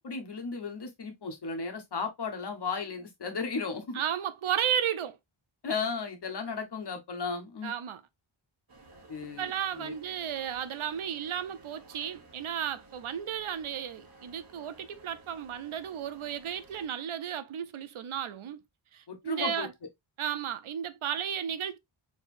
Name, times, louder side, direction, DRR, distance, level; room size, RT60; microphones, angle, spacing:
voice 1, 0.0-4.0 5.6-7.7 9.1-9.9 19.1-19.7, left 4 dB, 55° left, 1.3 m, -35 dB
voice 2, 3.9-5.2 7.6-8.0 9.2-18.6 18.9-19.7 20.2-21.8, right 9 dB, 80° right, 0.7 m, -34 dB
sound 1, 8.7-16.9, right 2 dB, 45° right, 1.5 m, -55 dB
4.5 x 3.4 x 2.6 m
wide cardioid pair, 90°, 49 cm